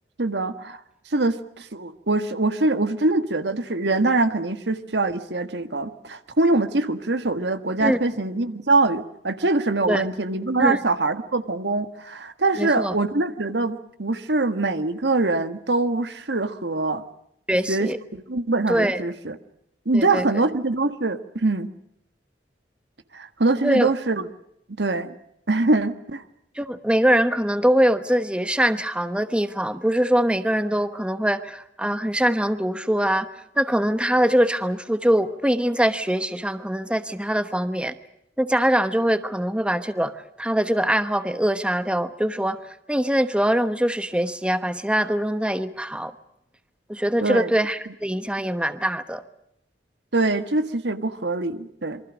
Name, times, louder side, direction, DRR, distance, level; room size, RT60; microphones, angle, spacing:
voice 1, 0.2-0.8 1.1-17.0 17.7-19.4 19.8-21.7 23.1-24.3 24.8-25.1 25.5-26.2 47.2-47.5 50.1-52.0, right 2 dB, 75° right, 10 dB, 1.6 m, -23 dB
voice 2, 12.6-12.9 17.5-18.0 18.7-19.0 19.9-20.3 23.6-23.9 26.6-33.3 33.6-37.9 38.4-40.1 40.4-42.6 42.9-46.1 46.9-49.2, equal, 5° right, 11 dB, 1.1 m, -23 dB
27.5 x 23.5 x 6.3 m, 0.78 s
head